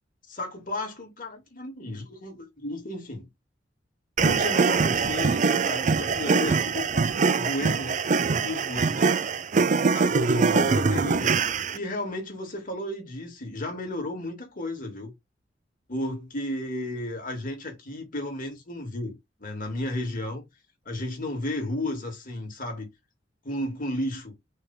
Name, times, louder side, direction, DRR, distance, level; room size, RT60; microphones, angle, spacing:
voice 1, 0.3-3.3 4.2-9.0 9.6-11.4 11.7-15.1 15.9-20.5 20.8-22.9 23.4-24.3, left 1 dB, 50° left, 3.1 m, -33 dB
sound 1, 4.2-11.8, right 4 dB, 45° right, 0.5 m, -23 dB
6.2 x 3.4 x 6.0 m
head